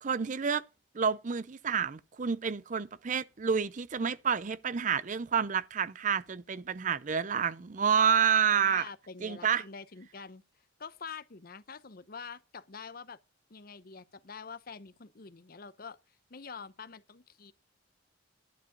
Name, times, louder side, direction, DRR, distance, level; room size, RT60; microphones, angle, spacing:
voice 1, 0.0-0.6 0.9-8.9 9.2-9.6, right 7 dB, 40° right, 0.5 m, -29 dB
voice 2, 8.5-10.4 10.8-13.2 13.5-16.0 16.3-17.5, left 5 dB, 50° left, 0.8 m, -46 dB
11.0 x 4.9 x 8.4 m
head